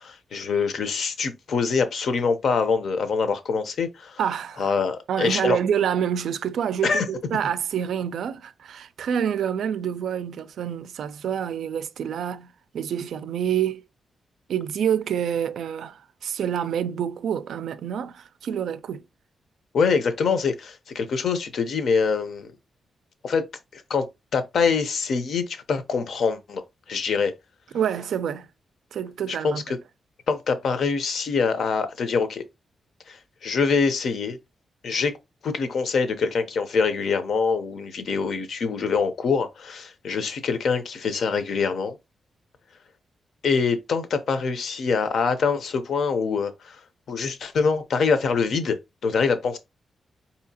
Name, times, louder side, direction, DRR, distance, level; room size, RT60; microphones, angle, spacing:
voice 1, 0.0-4.2 4.6-5.6 6.8-7.1 19.7-22.5 23.2-23.4 23.7-24.1 24.3-26.6 26.9-27.3 29.3-29.8 30.3-32.4 33.1-34.4 34.8-35.2 35.4-42.0 43.4-46.8 47.1-48.8 49.0-49.6, left 5 dB, 60° left, 0.6 m, -24 dB
voice 2, 4.2-4.7 5.1-13.8 14.5-19.0 27.7-28.5 28.9-29.6, right 8 dB, 80° right, 0.3 m, -27 dB
4.8 x 2.8 x 2.7 m
wide cardioid pair, 165°, 0 cm